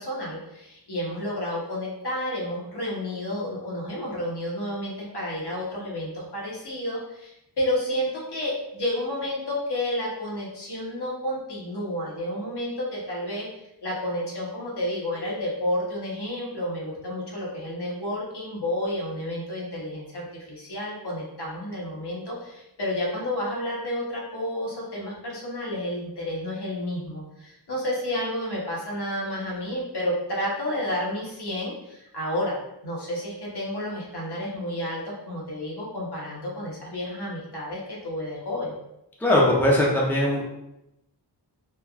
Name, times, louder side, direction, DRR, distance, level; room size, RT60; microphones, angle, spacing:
voice 1, 0.0-13.5 13.8-32.6 32.8-38.7, left 1 dB, 70° left, -5 dB, 1.0 m, -31 dB
voice 2, 39.2-40.4, left 1 dB, 5° left, -4 dB, 0.5 m, -20 dB
3.2 x 2.2 x 2.3 m, 0.87 s
wide cardioid pair, 90°, 42 cm